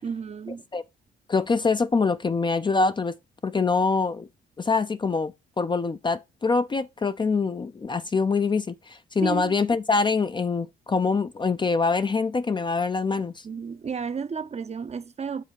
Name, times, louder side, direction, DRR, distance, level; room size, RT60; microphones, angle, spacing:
voice 1, 0.0-0.6 9.2-9.5 13.4-15.4, right 6 dB, 35° right, 0.6 m, -32 dB
voice 2, 1.3-3.2 3.4-4.3 4.6-13.4, left 4 dB, 25° left, 0.4 m, -24 dB
7.5 x 3.8 x 5.1 m
cardioid pair, 90°, 20 cm